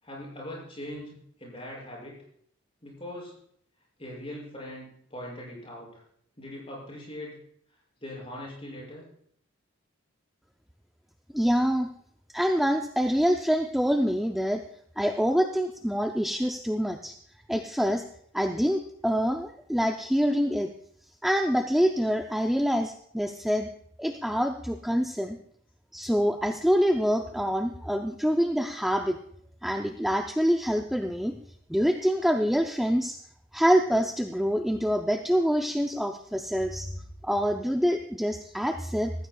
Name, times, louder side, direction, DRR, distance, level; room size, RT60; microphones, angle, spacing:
voice 1, 0.0-2.2 2.8-3.4 4.0-6.0 6.4-7.4 8.0-9.1, left 1 dB, 25° left, -4 dB, 6.5 m, -41 dB
voice 2, 11.3-11.9 12.3-14.6 15.0-17.1 17.5-18.0 18.3-20.7 21.2-23.7 24.0-25.4 25.9-29.2 29.6-31.3 31.7-33.2 33.5-36.9 37.2-39.1, equal, ahead, 3 dB, 0.5 m, -26 dB
19.5 x 15.0 x 2.3 m, 0.67 s
head